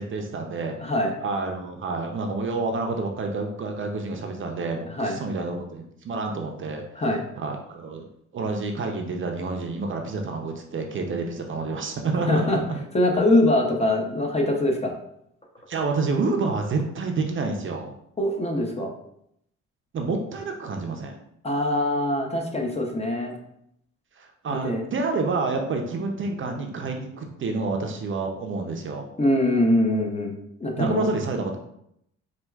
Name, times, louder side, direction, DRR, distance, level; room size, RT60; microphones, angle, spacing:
voice 1, 0.0-0.9 1.2-6.8 7.4-12.8 15.7-17.9 19.9-21.2 24.2-29.1 30.8-31.6, right 3 dB, 40° right, 3 dB, 0.5 m, -28 dB
voice 2, 0.8-1.1 4.9-5.2 6.9-7.2 12.3-12.6 12.9-14.9 18.2-18.9 21.4-23.4 24.5-24.8 29.2-30.3 30.6-31.1, left 1 dB, 20° left, 2 dB, 0.5 m, -23 dB
4.3 x 2.3 x 2.3 m, 0.74 s
cardioid pair, 90°, 30 cm